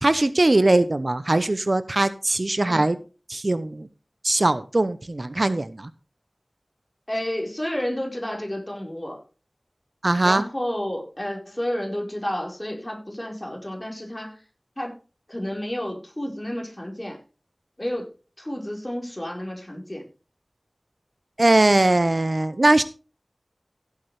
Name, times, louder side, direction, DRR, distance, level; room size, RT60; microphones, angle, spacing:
voice 1, 0.0-3.0 3.3-3.9 4.2-5.9 10.0-10.4 21.4-22.8, right 2 dB, 55° right, 12 dB, 0.8 m, -20 dB
voice 2, 7.1-9.2 10.2-14.3 14.8-15.0 15.3-17.2 17.8-18.1 18.4-20.1, left 1 dB, 25° left, 0 dB, 4.4 m, -31 dB
16.0 x 8.5 x 3.2 m, 0.34 s
wide cardioid pair, 55°, 0 cm